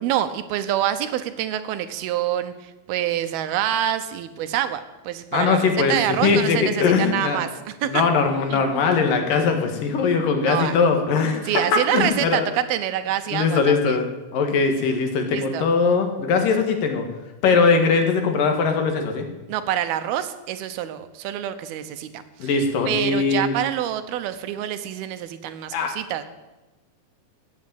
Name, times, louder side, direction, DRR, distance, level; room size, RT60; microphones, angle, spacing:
voice 1, 0.0-8.0 8.5-8.6 10.4-10.8 11.4-14.0 15.3-15.6 19.5-22.5 22.9-26.2, right 11 dB, 85° right, 11 dB, 2.9 m, -26 dB
voice 2, 5.3-6.0 6.2-7.5 7.8-11.4 11.7-12.5 13.3-14.0 14.3-17.1 17.4-19.3 22.4-23.6 25.7-25.9, left 5 dB, 65° left, 5 dB, 3.3 m, -20 dB
16.0 x 8.6 x 8.9 m, 1.1 s
omnidirectional pair, 4.3 m